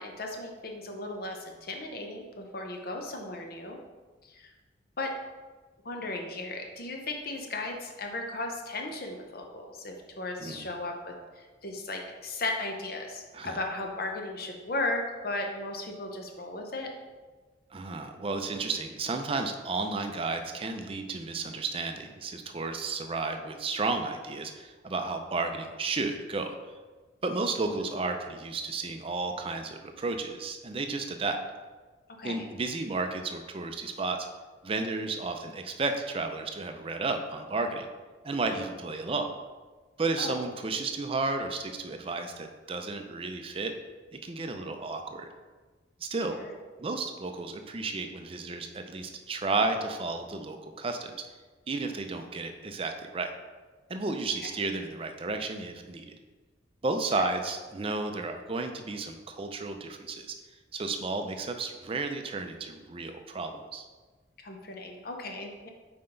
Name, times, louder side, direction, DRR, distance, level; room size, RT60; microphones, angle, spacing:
voice 1, 0.0-3.8 4.2-4.5 5.0-5.1 5.8-16.9 27.7-27.9 32.2-32.5 40.2-40.4 44.6-44.7 46.4-46.5 54.4-54.5 64.4-65.7, left 2 dB, 55° left, 2 dB, 0.8 m, -36 dB
voice 2, 17.7-26.6 27.2-31.4 32.2-34.2 34.6-37.9 38.2-39.3 40.0-43.7 44.1-45.3 46.0-46.4 46.8-51.2 51.7-53.3 53.9-56.1 56.8-60.3 60.7-63.9, right 3 dB, 30° right, 6 dB, 0.5 m, -32 dB
5.7 x 4.4 x 3.9 m, 1.3 s
head